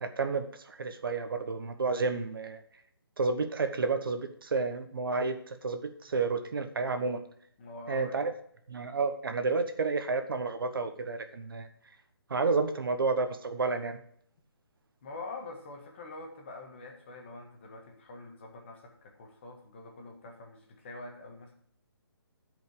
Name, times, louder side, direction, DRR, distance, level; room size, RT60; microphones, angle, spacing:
voice 1, 0.0-2.6 3.2-7.2 7.9-8.3 8.7-11.7 12.3-14.0, right 4 dB, 60° right, 8 dB, 1.2 m, -31 dB
voice 2, 7.6-8.3 15.0-21.5, left 2 dB, 25° left, 2 dB, 1.6 m, -45 dB
12.0 x 5.3 x 6.8 m, 0.64 s
hypercardioid pair, 170°, 13 cm